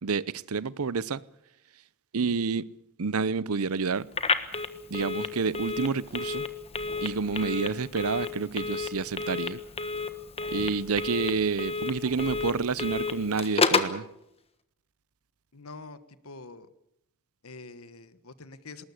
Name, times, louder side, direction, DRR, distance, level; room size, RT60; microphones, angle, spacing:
voice 1, 0.0-1.2 2.1-2.7 3.0-4.1 4.9-6.4 7.0-9.6 10.5-14.1, right 4 dB, 80° right, 0.7 m, -29 dB
Telephone, 4.1-14.0, left 4 dB, 25° left, 1.4 m, -31 dB
voice 2, 15.5-16.7 17.4-18.8, left 3 dB, 75° left, 1.5 m, -45 dB
20.5 x 19.5 x 8.3 m
head